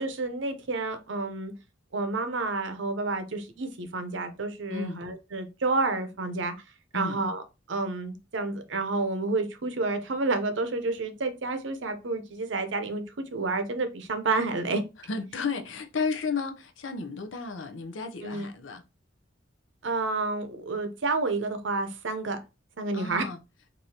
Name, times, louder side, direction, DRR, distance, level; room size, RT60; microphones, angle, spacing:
voice 1, 0.0-1.5 1.9-6.5 6.9-7.4 7.7-13.0 13.3-14.8 18.2-18.5 19.8-22.4 22.8-23.3, right 3 dB, 70° right, 0.7 m, -29 dB
voice 2, 15.1-18.8 22.9-23.4, left 4 dB, 75° left, 0.6 m, -33 dB
4.7 x 2.6 x 2.8 m
head